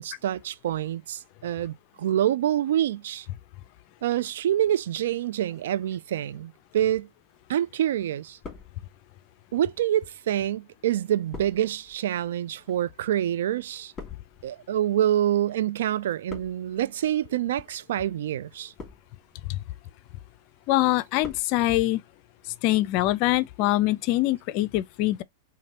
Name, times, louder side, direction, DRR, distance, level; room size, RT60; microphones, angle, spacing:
voice 1, 0.0-3.3 4.0-7.1 7.5-8.4 9.5-13.9 14.4-18.7, right 11 dB, 70° right, 0.4 m, -26 dB
sound 1, 7.3-7.9 8.2-9.2 9.9-15.6 15.8-16.8 17.5-17.8 18.5-19.3 19.7-20.2 20.6-21.5 21.8-21.9, left 4 dB, 20° left, 2.6 m, -46 dB
voice 2, 20.7-22.0 22.6-25.2, left 16 dB, 50° left, 0.4 m, -24 dB
5.7 x 2.6 x 2.8 m
hypercardioid pair, 105°, 0 cm